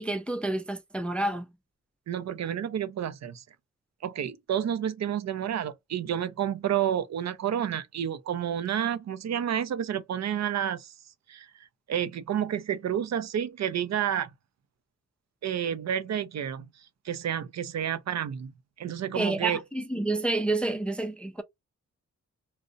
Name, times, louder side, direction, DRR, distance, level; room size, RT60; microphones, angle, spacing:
voice 1, 0.0-1.5 19.1-21.4, right 2 dB, 5° left, 0.3 m, -29 dB
voice 2, 2.1-3.4 4.0-10.9 11.3-11.5 11.9-14.3 15.4-16.7 17.0-18.5 18.8-19.6, right 9 dB, 60° right, 0.5 m, -30 dB
2.4 x 2.0 x 2.5 m
cardioid pair, 70°, 30 cm